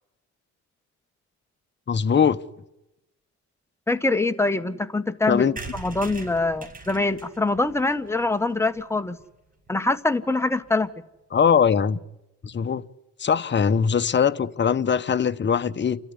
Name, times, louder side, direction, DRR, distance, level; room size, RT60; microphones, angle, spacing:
voice 1, 1.9-2.4 5.3-5.5 11.3-12.0 12.4-12.8 13.2-16.0, left 7 dB, 35° left, 1.1 m, -21 dB
voice 2, 3.9-9.2 9.7-10.9, left 2 dB, 10° left, 1.7 m, -24 dB
sound 1, 5.6-9.2 9.7-9.8 10.0-10.1 10.3-10.4 10.6-10.8, right 3 dB, 30° right, 5.7 m, -42 dB
30.0 x 13.5 x 9.8 m
cardioid pair, 90°, 30 cm